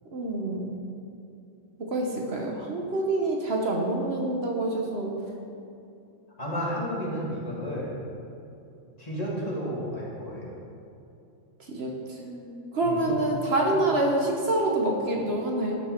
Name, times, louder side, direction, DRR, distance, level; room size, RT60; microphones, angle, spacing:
voice 1, 0.1-0.6 1.8-5.2 11.6-15.8, right 2 dB, 55° right, 0 dB, 1.2 m, -27 dB
voice 2, 6.4-8.0 9.0-10.5 12.8-13.0, equal, 30° left, -6 dB, 1.9 m, -32 dB
12.5 x 5.4 x 4.4 m, 2.7 s
omnidirectional pair, 1.3 m